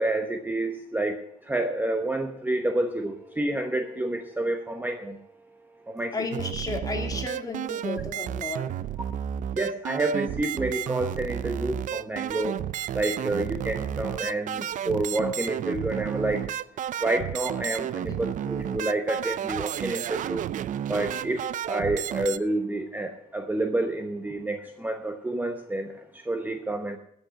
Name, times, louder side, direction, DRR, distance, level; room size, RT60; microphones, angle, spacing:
voice 1, 0.0-5.2 5.9-6.1 9.6-12.6 12.9-16.5 17.0-20.5 20.9-27.0, right 2 dB, 10° right, 6 dB, 0.9 m, -29 dB
voice 2, 6.1-8.8 18.1-18.2, left 3 dB, 20° left, 3 dB, 2.5 m, -33 dB
sound 1, 6.3-22.4, right 10 dB, 50° right, 0.5 m, -32 dB
12.5 x 6.5 x 8.3 m, 0.72 s
cardioid pair, 110°, 17 cm